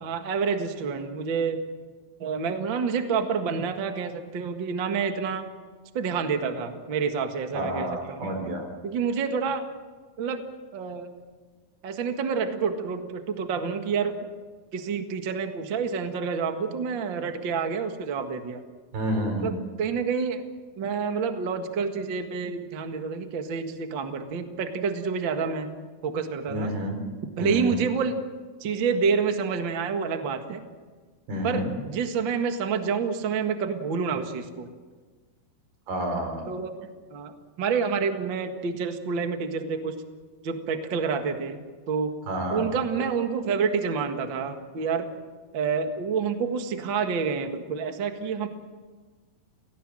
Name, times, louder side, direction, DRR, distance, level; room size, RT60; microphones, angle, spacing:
voice 1, 0.0-1.6 2.2-5.4 5.9-8.3 8.8-9.7 10.2-10.4 10.7-11.1 11.8-14.3 14.7-18.6 19.4-20.4 20.8-25.7 26.0-26.7 27.4-28.2 28.6-30.6 31.4-34.7 36.5-40.0 40.4-42.1 42.5-45.1 45.5-48.5, right 5 dB, 45° right, 6 dB, 1.7 m, -28 dB
voice 2, 7.5-8.7 18.9-19.5 26.5-27.0 27.4-27.8 31.3-31.7 35.9-36.4 42.3-42.7, right 1 dB, 75° right, 4 dB, 6.2 m, -29 dB
30.0 x 17.5 x 7.7 m, 1.4 s
omnidirectional pair, 4.4 m